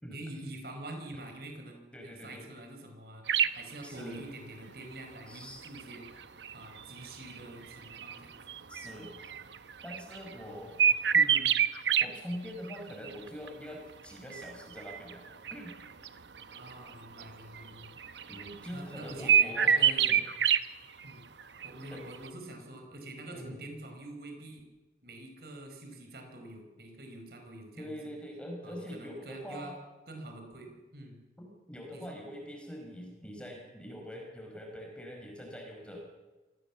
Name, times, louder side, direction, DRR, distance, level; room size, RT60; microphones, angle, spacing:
voice 1, 0.1-3.3 3.5-6.2 6.5-8.4 16.5-18.0 18.7-20.3 21.0-21.3 21.6-24.7 25.0-28.1 28.6-29.7 30.1-31.2 31.9-32.2, right 1 dB, 60° right, 4 dB, 4.9 m, -46 dB
voice 2, 1.9-2.5 3.8-4.2 5.3-5.6 8.7-9.3 9.8-10.8 11.1-11.5 12.0-15.8 18.0-19.8 20.0-20.2 21.9-22.0 23.3-23.6 27.8-29.8 31.4-36.1, equal, 5° left, 0 dB, 5.2 m, -44 dB
sound 1, 3.3-3.6 4.7-4.8 5.6-10.4 10.8-12.1 12.3-12.8 13.0-13.5 14.3-16.1 16.4-16.9 17.2-17.3 17.5-18.7 18.9-20.6 21.0-21.1 21.4-21.9 22.1-22.3, right 8 dB, 90° right, 1.0 m, -27 dB
27.0 x 17.0 x 7.3 m, 1.2 s
head